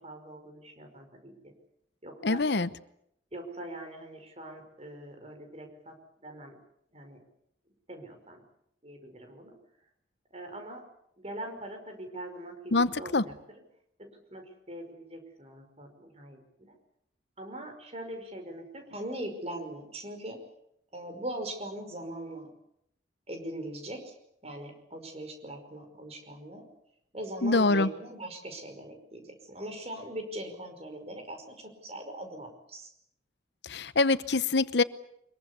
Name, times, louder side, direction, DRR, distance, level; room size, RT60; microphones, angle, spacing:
voice 1, 0.0-1.5 2.0-2.4 3.3-6.0 6.2-6.6 6.9-7.2 7.9-8.4 8.8-9.6 10.3-10.8 11.2-13.3 14.0-16.8 17.4-20.4 20.9-22.5 23.3-24.1 24.4-26.7 27.1-32.9, right 1 dB, 35° right, 5 dB, 5.3 m, -41 dB
voice 2, 2.2-2.7 12.7-13.2 27.4-27.9 33.7-34.8, left 3 dB, 70° left, 15 dB, 0.9 m, -24 dB
24.5 x 22.5 x 8.3 m, 0.74 s
head